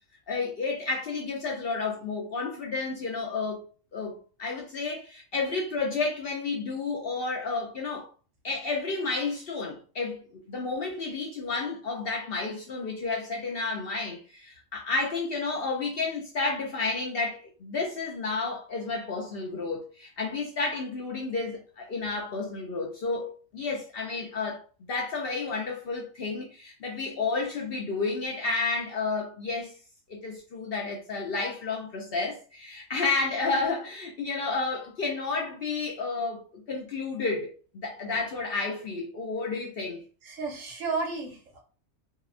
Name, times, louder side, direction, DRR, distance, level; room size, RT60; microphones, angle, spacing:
voice 1, 0.3-3.7 3.9-8.1 8.4-29.8 30.1-36.4 36.7-40.0, left 3 dB, 60° left, 0.7 m, -31 dB
voice 2, 40.2-41.6, right 4 dB, 75° right, 1.1 m, -33 dB
2.7 x 2.1 x 2.4 m
omnidirectional pair, 1.4 m